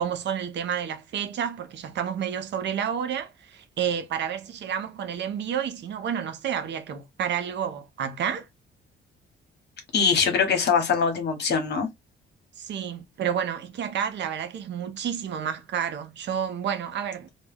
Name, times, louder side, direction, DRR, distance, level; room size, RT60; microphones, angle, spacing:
voice 1, 0.0-8.5 12.6-17.3, right 8 dB, 65° right, 0.6 m, -30 dB
voice 2, 9.9-11.9, left 5 dB, 60° left, 1.0 m, -22 dB
2.2 x 2.2 x 3.3 m
cardioid pair, 90°, 20 cm